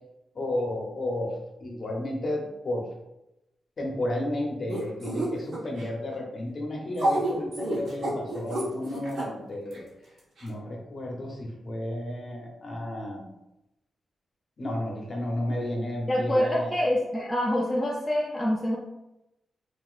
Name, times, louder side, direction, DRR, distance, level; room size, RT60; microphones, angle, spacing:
voice 1, 0.3-2.9 3.8-9.9 10.4-13.3 14.6-16.7, left 1 dB, 35° left, -1 dB, 0.9 m, -32 dB
sound 1, 4.7-5.9 6.9-9.2 9.7-9.8 10.4-10.5, right 1 dB, 65° right, 1.3 m, -29 dB
voice 2, 16.1-18.8, equal, 15° left, -5 dB, 0.5 m, -26 dB
5.8 x 2.7 x 2.5 m, 0.92 s
wide cardioid pair, 175°, 0 cm